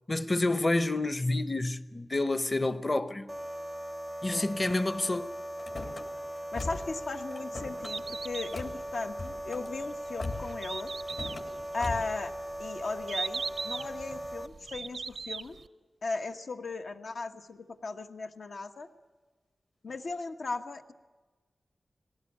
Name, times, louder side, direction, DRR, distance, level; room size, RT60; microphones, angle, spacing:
voice 1, 0.1-3.3 4.2-5.3, left 2 dB, 30° left, 0.8 m, -29 dB
sound 1, 3.3-14.5, right 1 dB, ahead, 0.6 m, -39 dB
Car / Slam, 5.6-6.0 6.5-7.0 7.3-7.9 8.5-8.8 9.1-9.7 10.2-10.6 11.1-11.5 11.8-12.2, left 3 dB, 65° left, 3.2 m, -39 dB
voice 2, 6.4-10.9 11.7-12.3 12.6-15.6 16.0-18.9 19.8-20.9, left 3 dB, 80° left, 1.2 m, -37 dB
Bird, 7.7-15.7, right 4 dB, 70° right, 0.6 m, -40 dB
20.0 x 17.5 x 8.5 m
wide cardioid pair, 100°, 0 cm